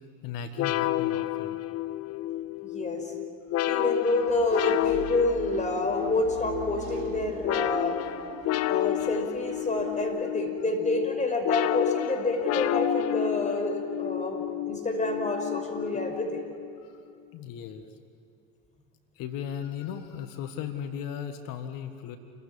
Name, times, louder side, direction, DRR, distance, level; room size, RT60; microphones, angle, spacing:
voice 1, 0.2-1.6 3.5-3.8 15.8-15.9 16.8-17.0 17.3-17.8 19.1-22.2, left 8 dB, 55° left, 8 dB, 1.7 m, -37 dB
sound 1, 0.6-16.8, left 15 dB, 40° left, 0.6 m, -30 dB
voice 2, 2.6-3.1 3.7-8.0 8.7-16.4, left 2 dB, 20° left, 3 dB, 5.6 m, -28 dB
Engine / Mechanisms, 4.1-10.0, right 8 dB, 60° right, 3.9 m, -44 dB
28.5 x 15.5 x 10.0 m, 2.5 s
hypercardioid pair, 70°, 40 cm